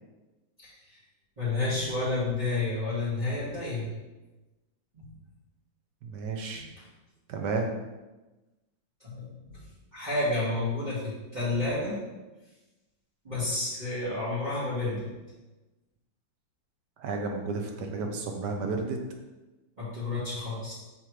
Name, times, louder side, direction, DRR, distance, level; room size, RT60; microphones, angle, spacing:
voice 1, 0.6-1.0 1.4-3.9 4.9-5.1 6.5-6.7 9.0-9.6 9.9-12.0 13.2-15.1 19.8-20.7, left 2 dB, 25° right, -11 dB, 1.8 m, -30 dB
voice 2, 6.0-6.7 7.3-7.7 17.0-19.0, right 3 dB, 65° right, 3 dB, 1.3 m, -32 dB
6.0 x 3.6 x 4.7 m, 1.1 s
omnidirectional pair, 2.2 m